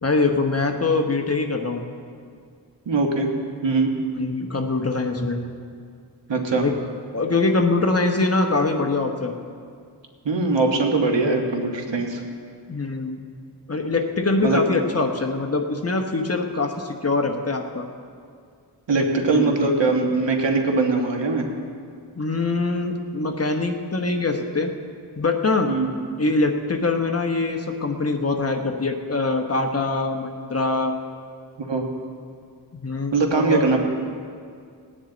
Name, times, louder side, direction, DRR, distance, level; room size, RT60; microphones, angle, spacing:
voice 1, 0.0-1.8 4.1-5.4 6.6-6.7 7.1-9.4 12.7-13.2 13.7-17.8 18.9-19.0 19.3-19.5 22.2-24.7 25.2-25.7 26.2-31.0 32.7-33.7, left 3 dB, 35° left, 4 dB, 1.0 m, -23 dB
voice 2, 2.8-3.3 3.6-4.0 6.3-6.7 10.2-12.2 14.4-14.6 18.9-21.5 25.7-25.9 31.7-31.9 33.1-33.8, right 3 dB, 85° right, 2 dB, 1.5 m, -21 dB
19.0 x 9.9 x 4.0 m, 2.2 s
wide cardioid pair, 90°, 43 cm